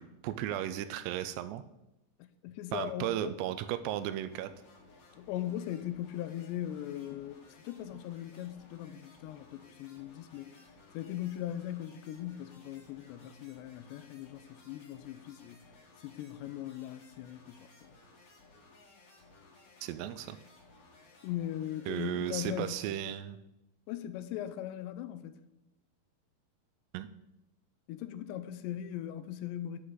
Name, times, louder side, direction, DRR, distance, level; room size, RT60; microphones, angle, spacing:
voice 1, 0.0-1.6 2.7-4.5 19.8-20.4 21.9-23.4 26.9-27.1, right 12 dB, 85° right, 2.5 m, -35 dB
voice 2, 2.2-3.4 5.2-10.6 10.9-15.6 16.0-17.9 21.2-22.8 23.9-25.4 27.9-29.8, left 12 dB, 90° left, 2.8 m, -39 dB
sound 1, 3.8-22.8, left 2 dB, 45° left, 2.4 m, -59 dB
11.0 x 7.9 x 3.9 m
omnidirectional pair, 4.9 m